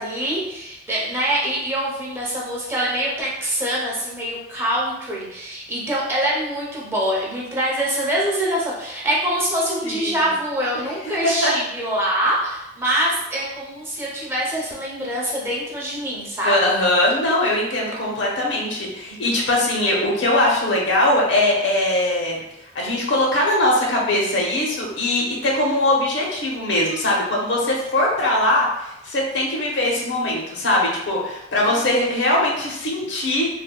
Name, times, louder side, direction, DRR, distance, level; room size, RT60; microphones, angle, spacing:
voice 1, 0.0-16.7 31.6-31.8, right 1 dB, 15° right, -5 dB, 0.7 m, -24 dB
voice 2, 9.8-10.2 11.2-11.5 16.4-22.4 22.7-33.5, left 1 dB, 80° left, -2 dB, 0.7 m, -21 dB
3.3 x 2.1 x 2.2 m, 0.87 s
head